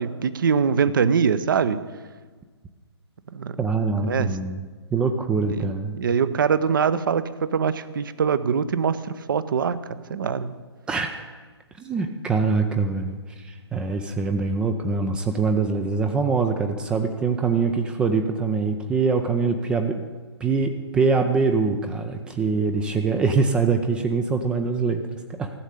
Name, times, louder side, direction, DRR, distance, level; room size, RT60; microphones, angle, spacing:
voice 1, 0.0-1.8 3.3-3.6 4.1-4.4 5.6-9.8 10.1-10.6, right 6 dB, 50° right, 15 dB, 0.7 m, -23 dB
voice 2, 3.6-4.6 4.9-6.0 10.9-11.2 11.8-20.0 20.4-25.0 25.4-25.5, right 4 dB, 5° right, 6 dB, 0.4 m, -23 dB
14.0 x 7.2 x 8.3 m, 1.4 s
figure-of-eight pair, 130°, 14 cm